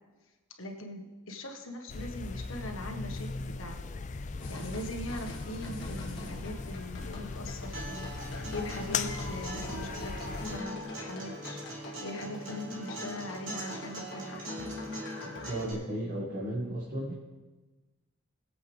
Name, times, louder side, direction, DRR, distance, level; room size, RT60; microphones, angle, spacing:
voice 1, 0.6-3.8 4.2-11.6 12.0-14.7, left 1 dB, 70° left, 2 dB, 1.6 m, -41 dB
sound 1, 1.9-10.6, left 4 dB, 35° left, 0.4 m, -38 dB
sound 2, 4.4-15.6, left 2 dB, 55° left, 2.0 m, -45 dB
voice 2, 7.1-7.4 14.2-14.9 15.2-17.1, right 1 dB, 40° right, -6 dB, 2.0 m, -37 dB
Acoustic guitar, 7.7-15.7, right 1 dB, 65° right, 3.4 m, -41 dB
21.0 x 7.9 x 3.6 m, 1.2 s
head